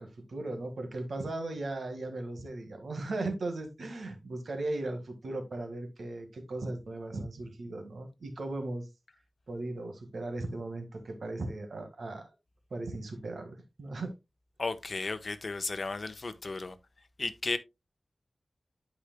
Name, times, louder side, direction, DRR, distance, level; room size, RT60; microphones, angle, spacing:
voice 1, 0.0-8.9 9.5-12.3 12.7-14.1, right 2 dB, 80° right, 1.7 m, -37 dB
voice 2, 14.6-16.7 17.2-17.6, left 3 dB, 55° left, 1.0 m, -34 dB
12.0 x 5.0 x 2.2 m
wide cardioid pair, 70°, 0 cm